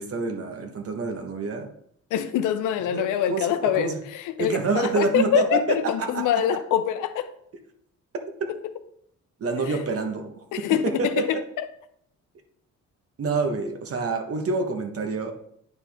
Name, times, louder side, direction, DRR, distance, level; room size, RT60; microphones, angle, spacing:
voice 1, 0.0-1.7 2.9-4.0 4.4-6.4 8.1-8.5 9.4-10.4 10.8-11.4 13.2-15.3, right 4 dB, 50° right, 1.3 m, -27 dB
voice 2, 2.1-7.3 9.7-9.8 10.5-11.6, left 10 dB, 85° left, 0.7 m, -25 dB
9.5 x 4.4 x 3.5 m
cardioid pair, 90°, 30 cm